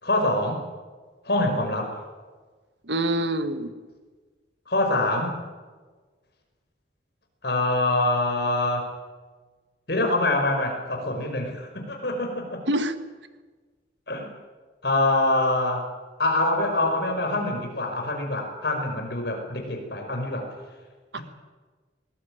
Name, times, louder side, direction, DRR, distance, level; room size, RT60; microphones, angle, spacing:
voice 1, 0.0-0.6 1.3-1.9 4.7-5.4 7.4-8.9 9.9-12.6 14.1-14.3 14.8-15.8 16.2-20.5 21.2-21.3, left 2 dB, 60° left, 3 dB, 5.4 m, -25 dB
voice 2, 2.8-3.7 12.7-12.9 21.1-21.2, right 1 dB, 70° right, 10 dB, 1.6 m, -25 dB
21.5 x 19.0 x 8.9 m, 1.4 s
head